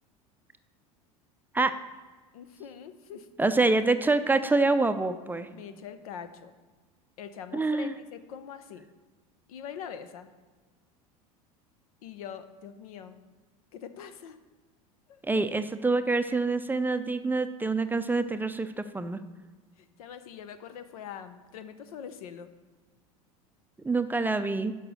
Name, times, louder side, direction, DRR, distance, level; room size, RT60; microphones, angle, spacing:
voice 1, 2.3-3.3 5.5-6.5 7.2-8.9 9.5-10.3 12.0-13.2 13.7-14.4 15.1-15.2 19.8-22.5, left 8 dB, 80° left, 11 dB, 0.7 m, -43 dB
voice 2, 3.4-5.5 7.5-7.9 15.2-19.2 23.8-24.7, right 3 dB, 10° right, 9 dB, 0.4 m, -26 dB
6.7 x 5.3 x 6.2 m, 1.4 s
hypercardioid pair, 90°, 18 cm